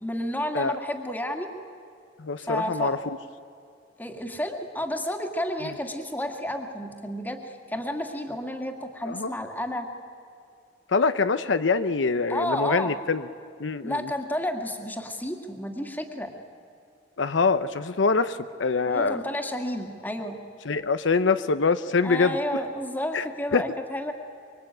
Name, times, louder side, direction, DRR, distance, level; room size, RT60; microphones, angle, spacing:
voice 1, 0.0-1.5 2.4-3.0 4.0-9.9 12.3-13.0 13.8-16.3 18.9-20.4 22.0-24.1, left 1 dB, 10° left, 4 dB, 2.0 m, -31 dB
voice 2, 2.2-3.0 9.1-9.3 10.9-13.2 13.6-14.0 17.2-19.2 20.6-22.4 23.1-23.2 23.5-23.6, left 4 dB, 75° left, 11 dB, 0.7 m, -24 dB
24.5 x 23.5 x 9.0 m, 2.4 s
head